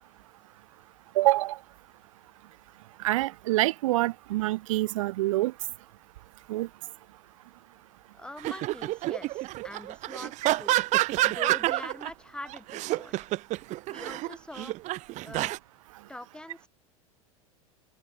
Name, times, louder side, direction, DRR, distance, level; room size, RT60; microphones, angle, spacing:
voice 1, 1.2-1.6 3.0-5.5 6.5-6.7, right 18 dB, 65° right, 0.5 m, -26 dB
voice 2, 8.2-10.8 11.2-13.2 13.9-14.7 15.2-15.5 16.1-16.7, left 1 dB, 5° left, 3.0 m, -43 dB
sound 1, 8.4-12.1 12.5-15.6, right 18 dB, 40° right, 0.8 m, -28 dB
open air
hypercardioid pair, 90°, 18 cm